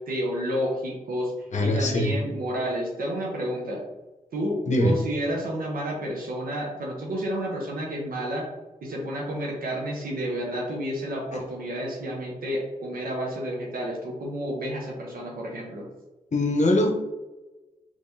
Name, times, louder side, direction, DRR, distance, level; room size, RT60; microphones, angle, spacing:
voice 1, 0.1-1.3 1.6-3.8 4.3-8.5 8.8-15.9, equal, 85° right, -2 dB, 0.8 m, -30 dB
voice 2, 1.5-2.1 4.7-4.9 16.3-16.9, left 1 dB, 55° left, 2 dB, 0.7 m, -22 dB
3.6 x 3.1 x 2.7 m, 1.1 s
cardioid pair, 45°, 15 cm